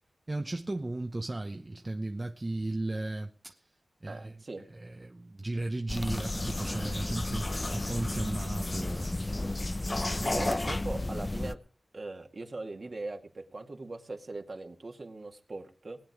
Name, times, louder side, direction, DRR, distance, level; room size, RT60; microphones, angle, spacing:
voice 1, 0.3-3.6 4.0-4.3 4.7-9.2 10.2-10.4, right 2 dB, 30° right, 0.9 m, -35 dB
voice 2, 4.1-4.7 10.2-11.6 11.9-16.0, right 2 dB, 50° right, 2.2 m, -40 dB
sound 1, 5.9-11.5, left 2 dB, 30° left, 0.5 m, -32 dB
20.0 x 9.0 x 4.8 m
wide cardioid pair, 75°, 0 cm